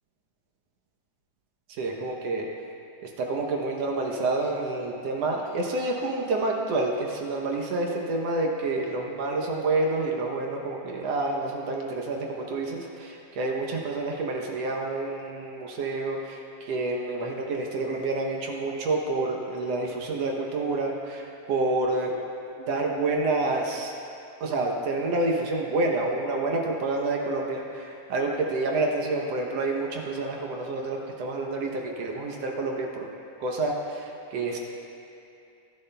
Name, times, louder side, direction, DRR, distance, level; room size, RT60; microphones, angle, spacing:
voice 1, 1.7-2.5 3.0-22.1 22.7-23.9 24.4-33.1 33.4-34.6, right 2 dB, 70° right, 0 dB, 1.6 m, -28 dB
20.5 x 10.5 x 2.2 m, 2.7 s
omnidirectional pair, 3.7 m